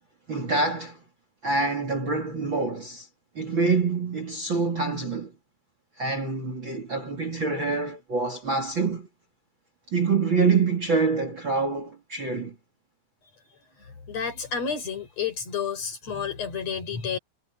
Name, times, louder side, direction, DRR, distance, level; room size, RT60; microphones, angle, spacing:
voice 1, 0.3-1.0 1.4-3.1 3.3-5.3 6.0-9.1 9.9-12.5, right 4 dB, 35° right, 2.9 m, -26 dB
voice 2, 14.1-17.2, left 6 dB, 45° left, 5.3 m, -30 dB
omnidirectional pair, 4.4 m